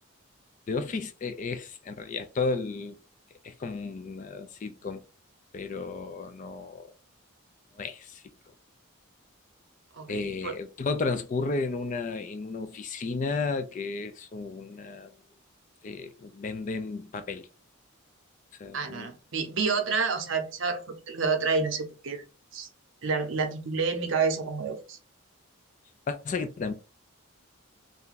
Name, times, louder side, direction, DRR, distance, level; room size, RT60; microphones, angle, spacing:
voice 1, 0.7-3.0 3.4-5.0 5.5-6.9 7.8-8.2 10.1-15.1 15.8-17.5 18.6-19.1 26.1-26.7, left 4 dB, 35° left, 0.3 m, -33 dB
voice 2, 9.9-10.5 18.7-22.2 22.5-22.7 23.0-25.0, right 4 dB, 60° right, 0.6 m, -29 dB
2.5 x 2.2 x 3.8 m
head